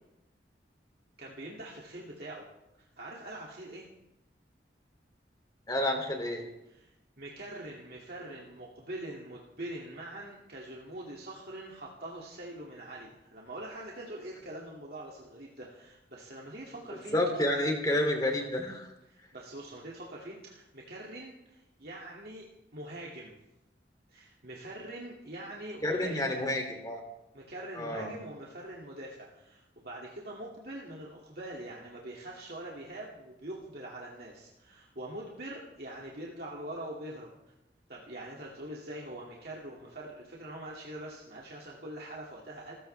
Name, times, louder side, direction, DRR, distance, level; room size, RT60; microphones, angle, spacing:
voice 1, 1.2-2.5 2.8-3.9 6.6-17.2 19.1-22.5 22.7-23.3 24.1-26.4 27.3-37.3 37.9-42.7, right 1 dB, 55° right, -4 dB, 2.3 m, -43 dB
voice 2, 5.7-6.5 17.1-18.9 25.8-27.0 27.7-28.1, left 1 dB, 20° left, 3 dB, 2.7 m, -29 dB
27.5 x 15.0 x 3.4 m, 0.90 s
head